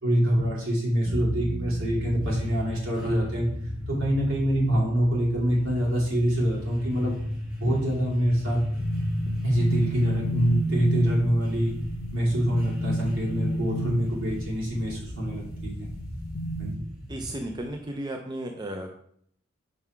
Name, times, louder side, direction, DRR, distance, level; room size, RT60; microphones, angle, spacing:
voice 1, 0.0-3.5 3.9-7.2 7.6-8.6 9.4-11.7 12.1-15.9 16.6-16.9, equal, 75° right, -4 dB, 2.4 m, -25 dB
sound 1, 1.0-17.8, left 1 dB, 5° right, 1.4 m, -35 dB
sound 2, 8.8-16.8, right 1 dB, 45° left, 0.7 m, -32 dB
voice 2, 17.1-18.9, right 1 dB, 20° right, 3 dB, 0.4 m, -34 dB
5.5 x 3.9 x 4.5 m, 0.66 s
head